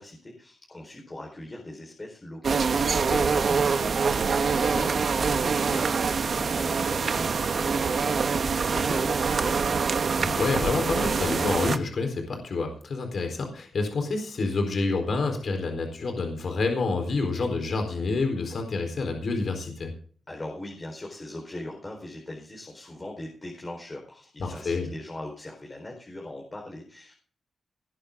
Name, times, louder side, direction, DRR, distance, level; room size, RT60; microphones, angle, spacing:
voice 1, 0.0-9.8 20.3-27.1, left 1 dB, 25° left, 0 dB, 4.5 m, -40 dB
sound 1, 2.4-11.8, right 5 dB, 55° right, 1.2 m, -25 dB
voice 2, 2.8-3.3 10.2-19.9 24.4-24.9, left 3 dB, 60° left, 4 dB, 4.0 m, -28 dB
19.0 x 11.0 x 3.8 m, 0.43 s
wide cardioid pair, 115°, 0 cm